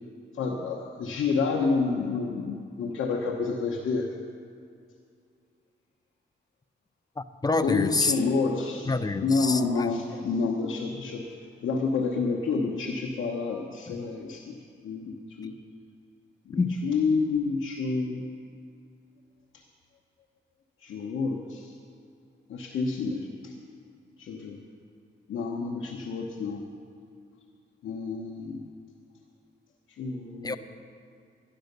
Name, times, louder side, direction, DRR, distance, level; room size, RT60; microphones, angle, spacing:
voice 1, 0.4-4.1 7.6-8.9 9.2-11.3 11.6-14.6 14.8-15.6 16.5-18.2 20.8-21.7 22.5-23.5 24.2-24.6 25.3-26.6 27.8-28.6 30.0-30.6, left 4 dB, 85° left, -1 dB, 1.1 m, -29 dB
voice 2, 7.2-8.2 8.9-9.9 13.9-14.0 16.6-16.7 30.4-30.6, left 3 dB, 20° left, 11 dB, 0.7 m, -27 dB
11.5 x 11.0 x 6.7 m, 2.3 s
cardioid pair, 80°, 20 cm